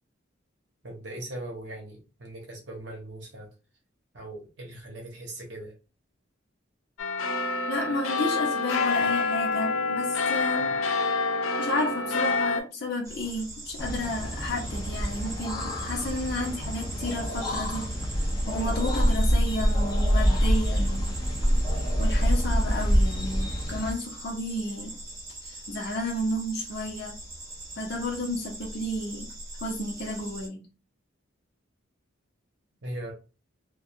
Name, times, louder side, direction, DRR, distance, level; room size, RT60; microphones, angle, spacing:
voice 1, 0.8-3.5 4.1-5.7 32.8-33.1, right 1 dB, 60° right, -1 dB, 0.8 m, -39 dB
sound 1, 7.0-12.6, left 4 dB, 85° left, 0.4 m, -27 dB
voice 2, 7.7-10.8 11.6-21.2 22.0-25.0 25.4-27.2 27.8-29.3 29.6-30.6, left 1 dB, 55° left, -2 dB, 0.7 m, -32 dB
sound 2, 13.0-30.5, right 2 dB, 15° right, 0.7 m, -42 dB
sound 3, 13.8-23.9, equal, 20° left, 0.4 m, -26 dB
2.3 x 2.2 x 2.7 m, 0.33 s
head